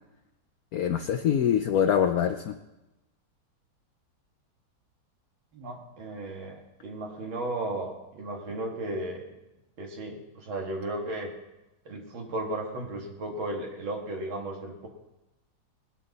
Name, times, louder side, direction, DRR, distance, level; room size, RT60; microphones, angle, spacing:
voice 1, 0.7-2.6, left 8 dB, 65° left, 6 dB, 0.9 m, -24 dB
voice 2, 5.5-9.3 9.8-11.3 11.9-14.9, right 1 dB, 80° right, 0 dB, 2.5 m, -35 dB
19.0 x 12.0 x 4.1 m, 0.98 s
omnidirectional pair, 2.2 m